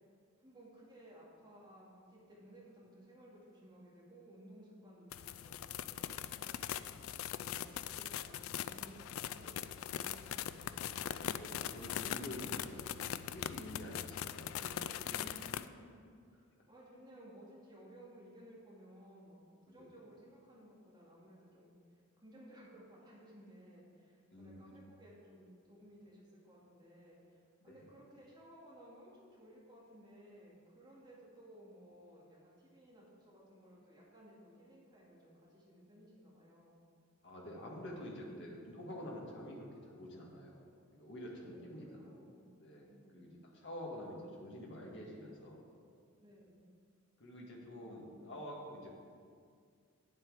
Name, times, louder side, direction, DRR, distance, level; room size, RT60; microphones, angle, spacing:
voice 1, 0.4-6.7 7.3-11.0 14.0-14.2 15.1-16.0 16.3-21.7 22.2-36.8 41.4-42.4 42.8-43.3 46.2-46.6 47.8-48.1, equal, 20° right, -6 dB, 2.4 m, -58 dB
sound 1, 5.1-15.7, left 10 dB, 75° left, 0.3 m, -41 dB
voice 2, 11.3-15.1 19.7-19.9 24.3-24.6 27.7-27.9 37.2-40.6 40.9-42.0 42.6-42.9 43.1-45.6 47.2-48.9, left 1 dB, 55° left, -2 dB, 1.8 m, -48 dB
9.4 x 7.7 x 4.9 m, 2.2 s
head